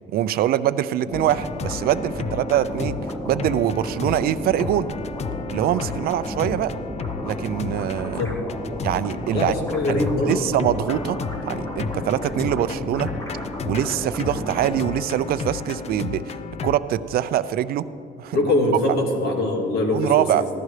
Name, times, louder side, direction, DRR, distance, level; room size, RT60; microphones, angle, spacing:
voice 1, 0.1-3.0 3.3-4.9 5.5-6.7 7.2-8.2 8.8-9.5 9.9-10.0 10.3-11.2 11.5-13.1 13.7-16.2 16.6-17.9 18.2-18.4 19.9-20.4, right 12 dB, 65° right, 14 dB, 0.4 m, -23 dB
sound 1, 1.1-16.8, left 5 dB, 40° left, 0.5 m, -33 dB
sound 2, 1.1-14.9, equal, 20° left, 1.6 m, -33 dB
voice 2, 9.3-10.4 18.3-20.5, left 2 dB, 70° left, 1 dB, 2.1 m, -23 dB
15.5 x 12.5 x 3.2 m, 2.7 s
cardioid pair, 110°, 17 cm